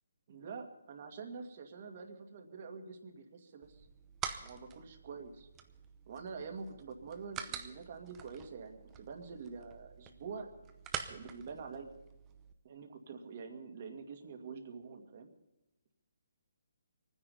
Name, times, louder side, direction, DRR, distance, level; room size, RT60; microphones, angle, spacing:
voice 1, 0.3-3.9 4.4-5.5 6.1-10.5 11.1-11.9 12.6-15.3, right 5 dB, 45° right, 4 dB, 2.1 m, -46 dB
sound 1, 3.6-12.5, right 8 dB, 15° right, 0.7 m, -47 dB
23.5 x 9.9 x 5.5 m, 0.97 s
hypercardioid pair, 160°, 0 cm